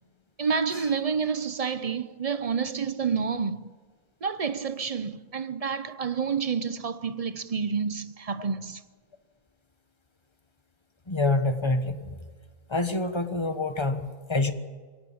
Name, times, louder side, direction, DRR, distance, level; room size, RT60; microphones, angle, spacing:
voice 1, 0.4-3.7 4.2-8.8, right 6 dB, 40° right, 0.5 m, -29 dB
voice 2, 11.1-12.0 12.7-14.5, left 2 dB, 20° left, 1.2 m, -26 dB
22.5 x 17.0 x 8.6 m
omnidirectional pair, 1.5 m